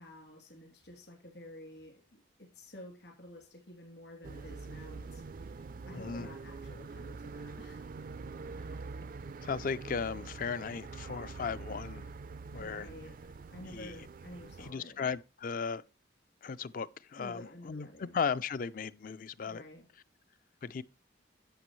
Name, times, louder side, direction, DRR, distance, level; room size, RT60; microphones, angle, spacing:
voice 1, 0.0-7.8 12.6-13.2 13.5-15.1 17.2-18.2 19.4-19.8, left 1 dB, 65° left, 2.9 m, -51 dB
sound 1, 4.2-14.7, right 4 dB, 45° right, 0.3 m, -45 dB
voice 2, 5.9-6.3 9.4-12.1 12.5-12.9 13.7-13.9 14.6-15.8 16.4-19.6 20.6-20.8, left 5 dB, 45° left, 0.4 m, -36 dB
11.5 x 7.4 x 3.2 m
head